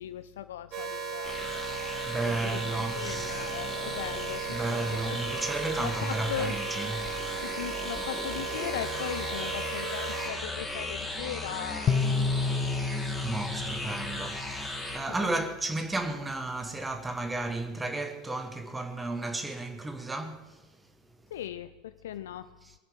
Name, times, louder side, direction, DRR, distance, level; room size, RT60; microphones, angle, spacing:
voice 1, 0.0-1.5 2.3-5.2 5.8-6.5 7.4-12.0 15.2-15.3 21.3-22.5, left 11 dB, 65° left, 0.4 m, -38 dB
sound 1, 0.7-10.3, right 5 dB, 45° right, 3.9 m, -36 dB
sound 2, 1.2-15.0, left 2 dB, 5° left, 2.9 m, -37 dB
voice 2, 2.0-3.6 4.5-7.1 13.2-20.6 22.6-22.7, right 2 dB, 10° right, 1.3 m, -33 dB
sound 3, 11.9-15.1, left 4 dB, 30° left, 0.8 m, -30 dB
20.5 x 8.7 x 6.5 m
figure-of-eight pair, 80°, 0 cm